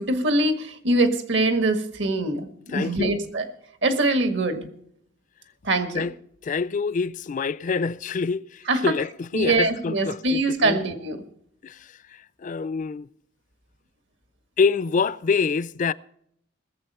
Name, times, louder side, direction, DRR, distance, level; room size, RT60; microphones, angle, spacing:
voice 1, 0.0-3.5 3.8-4.7 5.6-6.0 8.7-8.8 9.3-11.2, right 2 dB, 70° right, 1.7 m, -23 dB
voice 2, 2.7-3.2 5.9-6.1 6.4-10.8 11.6-13.1 14.6-15.9, left 5 dB, 45° left, 0.4 m, -26 dB
20.0 x 7.5 x 5.4 m
head